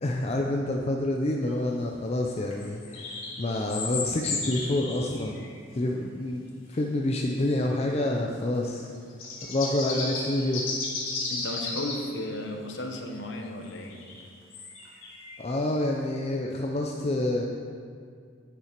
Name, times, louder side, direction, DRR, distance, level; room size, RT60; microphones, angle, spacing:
voice 1, 0.0-5.5 5.7-6.4 6.7-8.9 9.5-10.7 15.4-17.5, left 1 dB, 30° left, 0 dB, 0.5 m, -28 dB
sound 1, 2.4-5.6 6.7-6.8 8.8-12.0 13.7-15.6, left 3 dB, 90° left, 1.8 m, -34 dB
voice 2, 11.3-14.0, left 1 dB, 60° left, 3 dB, 1.0 m, -34 dB
10.5 x 5.7 x 4.5 m, 2.1 s
head